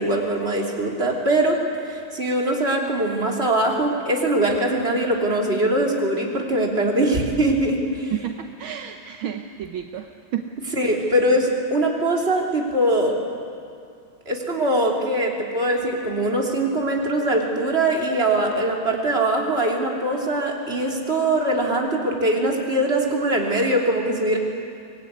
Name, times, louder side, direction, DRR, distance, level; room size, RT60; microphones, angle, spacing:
voice 1, 0.0-1.6 1.8-8.1 10.7-13.2 14.3-24.4, right 1 dB, 30° right, -1 dB, 3.4 m, -22 dB
voice 2, 8.1-10.1 10.3-10.4 10.8-10.9, right 10 dB, 70° right, 5 dB, 1.7 m, -31 dB
24.5 x 21.0 x 9.5 m, 2.4 s
omnidirectional pair, 2.4 m